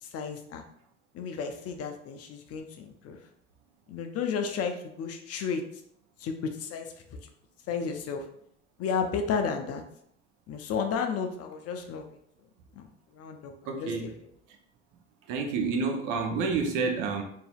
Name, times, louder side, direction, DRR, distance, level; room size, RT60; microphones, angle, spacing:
voice 1, 0.0-0.6 1.1-3.2 3.9-5.6 6.2-6.9 7.2-7.3 7.7-8.3 8.8-9.8 10.5-12.1 12.8-13.5 13.8-14.3, left 6 dB, 40° left, 5 dB, 0.5 m, -33 dB
voice 2, 13.7-14.0 15.3-17.2, right 4 dB, 55° right, 3 dB, 0.8 m, -28 dB
4.0 x 2.7 x 2.3 m, 0.70 s
hypercardioid pair, 65°, 36 cm